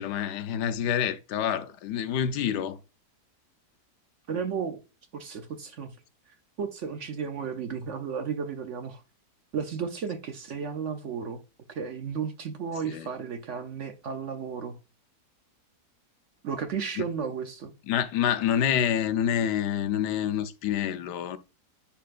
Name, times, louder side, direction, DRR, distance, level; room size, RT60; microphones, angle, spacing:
voice 1, 0.0-2.8 12.8-13.1 17.0-17.1 17.9-21.4, left 9 dB, 90° left, 1.3 m, -27 dB
voice 2, 4.3-4.8 5.1-5.9 6.6-9.0 9.5-11.4 11.7-14.8 16.4-17.7, right 6 dB, 60° right, 0.8 m, -33 dB
10.0 x 4.4 x 2.4 m
omnidirectional pair, 1.8 m